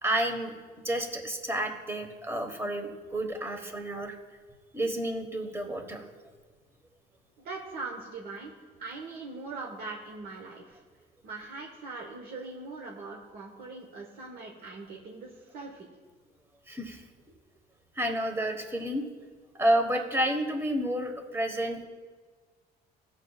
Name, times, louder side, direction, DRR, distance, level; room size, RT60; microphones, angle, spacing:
voice 1, 0.0-0.5 0.8-4.2 4.7-6.1 16.7-17.0 18.0-19.1 19.6-21.8, right 1 dB, 15° right, 4 dB, 1.3 m, -30 dB
voice 2, 7.4-8.5 8.8-10.8 11.2-15.9, right 3 dB, 65° right, -1 dB, 1.2 m, -41 dB
16.5 x 6.8 x 2.4 m, 1.5 s
cardioid pair, 110°, 17 cm